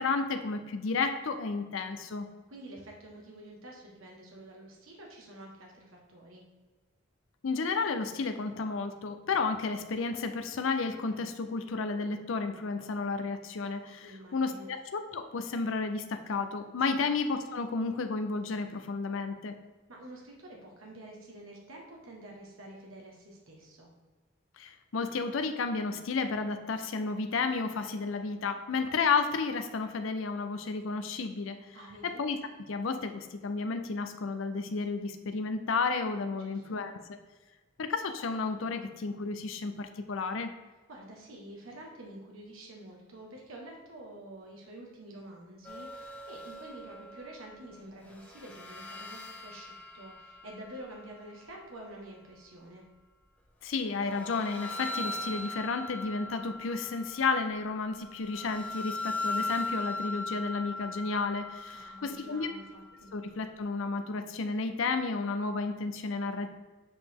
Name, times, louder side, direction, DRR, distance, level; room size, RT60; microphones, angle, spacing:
voice 1, 0.0-2.3 7.4-19.5 24.6-31.8 32.0-32.4 32.7-36.9 37.8-40.5 53.6-62.5 63.1-66.5, left 4 dB, 70° left, 8 dB, 0.5 m, -32 dB
voice 2, 2.5-6.4 14.0-14.7 16.9-17.1 19.9-23.9 31.7-32.2 36.3-36.8 40.9-52.8 61.7-63.1, right 1 dB, 80° right, -1 dB, 1.4 m, -48 dB
sound 1, 45.6-47.8 48.1-51.2 53.9-63.3, left 2 dB, 5° left, 0.7 m, -40 dB
6.9 x 4.9 x 3.6 m, 1.3 s
head